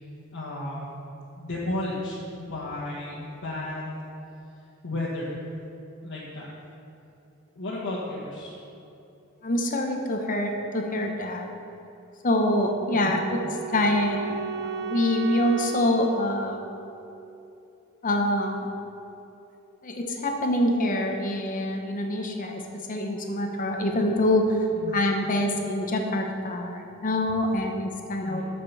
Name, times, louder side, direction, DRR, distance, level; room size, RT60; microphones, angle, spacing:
voice 1, 0.3-0.9 1.4-4.0 4.8-5.5 6.0-6.5 7.5-8.6 12.9-13.2 24.7-25.0 28.2-28.4, left 1 dB, 65° left, -7 dB, 1.5 m, -33 dB
voice 2, 9.4-11.5 12.2-13.4 13.7-16.6 18.0-18.7 19.8-22.6 22.9-24.7 24.9-28.4, left 1 dB, 40° left, 3 dB, 0.8 m, -25 dB
Wind instrument woodwind instrument, 12.5-17.5, right 6 dB, 50° right, 0.8 m, -35 dB
13.0 x 5.2 x 5.5 m, 2.9 s
head